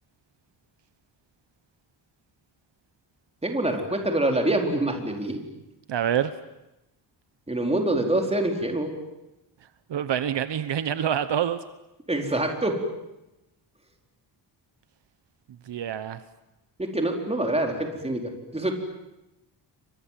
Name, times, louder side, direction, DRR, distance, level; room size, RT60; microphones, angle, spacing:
voice 1, 3.4-5.4 7.5-8.9 12.1-12.8 16.8-18.7, right 1 dB, 15° right, 2 dB, 4.4 m, -25 dB
voice 2, 5.9-6.3 9.9-11.6 15.7-16.2, right 9 dB, 65° right, 12 dB, 1.1 m, -26 dB
30.0 x 25.0 x 7.6 m, 0.93 s
wide cardioid pair, 140°, 45 cm